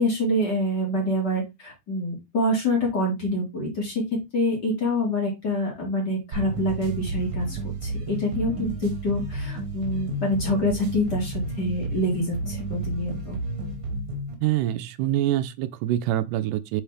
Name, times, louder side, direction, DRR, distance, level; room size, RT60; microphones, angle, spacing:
voice 1, 0.0-4.0 4.3-13.4, left 1 dB, 35° left, 2.4 m, -26 dB
sound 1, 6.3-14.3, right 2 dB, 50° right, 1.9 m, -31 dB
voice 2, 14.4-16.8, right 13 dB, 85° right, 2.1 m, -25 dB
5.6 x 5.4 x 3.5 m
omnidirectional pair, 3.7 m